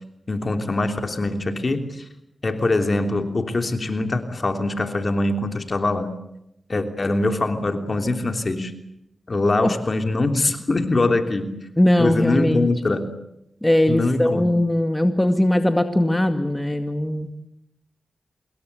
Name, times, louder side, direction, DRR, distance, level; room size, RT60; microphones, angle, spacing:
voice 1, 0.3-2.0 2.4-6.1 6.7-8.7 9.3-11.6 12.0-13.1 13.9-14.5, left 2 dB, 50° left, 6 dB, 3.2 m, -23 dB
voice 2, 11.8-12.7 13.6-17.3, left 1 dB, 15° left, 7 dB, 2.1 m, -20 dB
26.0 x 21.5 x 8.2 m, 0.82 s
cardioid pair, 50°, 0 cm